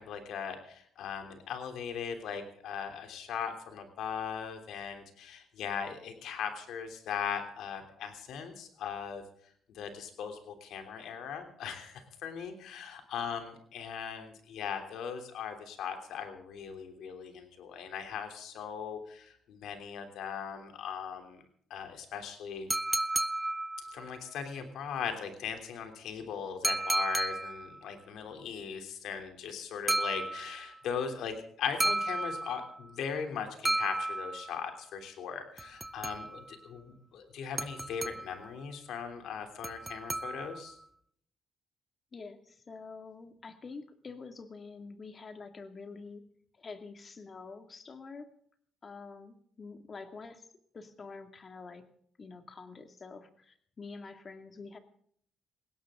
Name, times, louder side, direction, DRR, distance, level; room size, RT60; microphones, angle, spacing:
voice 1, 0.0-9.2 9.7-21.4 21.7-22.7 23.8-40.8, left 7 dB, 80° left, 6 dB, 3.3 m, -39 dB
sound 1, 22.7-24.2 26.6-27.8 29.9-30.8 31.8-32.8 33.7-34.7 35.6-36.5 37.6-38.5 39.6-40.7, right 2 dB, 15° right, 0.7 m, -33 dB
voice 2, 42.1-46.2 46.5-48.3 48.8-50.5 50.7-51.8 52.2-54.8, left 4 dB, 40° left, 7 dB, 2.3 m, -47 dB
20.0 x 17.0 x 3.8 m, 0.63 s
cardioid pair, 90°, 0 cm